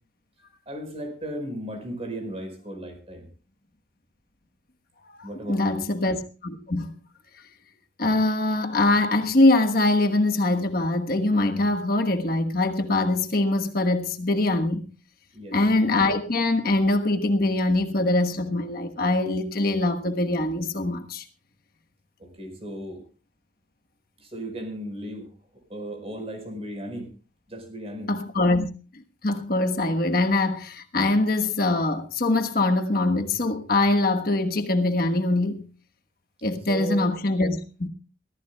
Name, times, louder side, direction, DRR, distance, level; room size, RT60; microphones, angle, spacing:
voice 1, 0.6-3.3 5.2-5.9 15.3-15.6 22.2-23.0 24.2-25.3 25.7-27.1 27.5-28.1 36.7-37.1, right 1 dB, 30° right, 4.8 m, -35 dB
voice 2, 5.2-6.2 6.4-6.9 8.0-14.8 15.5-21.2 28.1-28.7 28.9-35.6 36.4-37.9, left 2 dB, 50° left, 1.3 m, -23 dB
24.0 x 14.5 x 2.3 m
head